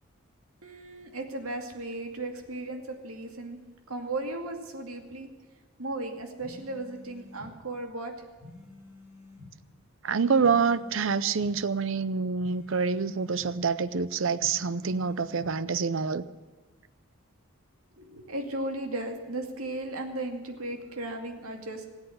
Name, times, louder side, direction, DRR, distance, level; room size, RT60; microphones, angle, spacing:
voice 1, 0.6-3.6 3.9-5.3 5.8-8.1 18.0-21.9, right 2 dB, 80° right, 4 dB, 2.3 m, -36 dB
sound 1, 6.4-7.5 8.4-9.5 10.4-11.5 12.4-13.5 14.4-15.5, left 2 dB, 5° right, 5.8 m, -49 dB
voice 2, 10.0-16.2, right 5 dB, 60° right, 17 dB, 0.6 m, -26 dB
17.5 x 8.3 x 8.0 m, 1.4 s
head